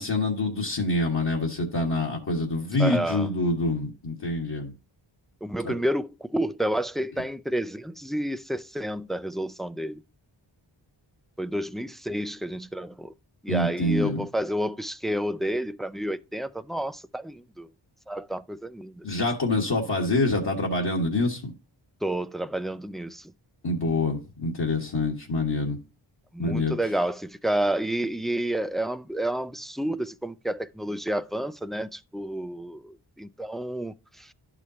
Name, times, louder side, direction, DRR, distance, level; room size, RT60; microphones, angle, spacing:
voice 1, 0.0-4.7 5.6-5.7 13.5-14.2 19.0-21.5 23.6-25.8 26.4-26.7, left 2 dB, 55° left, 1.6 m, -26 dB
voice 2, 2.8-3.3 5.4-10.0 11.4-13.1 13.4-17.7 18.1-19.1 22.0-23.3 26.3-34.3, right 1 dB, ahead, 0.3 m, -30 dB
12.0 x 4.9 x 2.8 m
wide cardioid pair, 100°, 47 cm